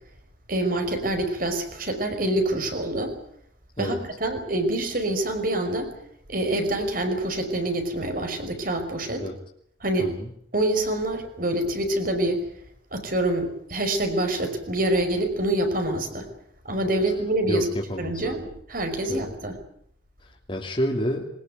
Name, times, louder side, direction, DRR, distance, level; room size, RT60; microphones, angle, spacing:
voice 1, 0.5-3.2 3.8-5.9 6.3-9.3 9.8-10.1 10.5-12.4 12.9-16.3 16.7-17.7 18.0-18.4 18.7-19.6, right 1 dB, 50° right, 7 dB, 5.5 m, -26 dB
voice 2, 17.5-18.4 19.1-19.3 20.2-21.3, equal, 30° left, -2 dB, 3.1 m, -29 dB
23.0 x 20.0 x 9.4 m, 0.68 s
head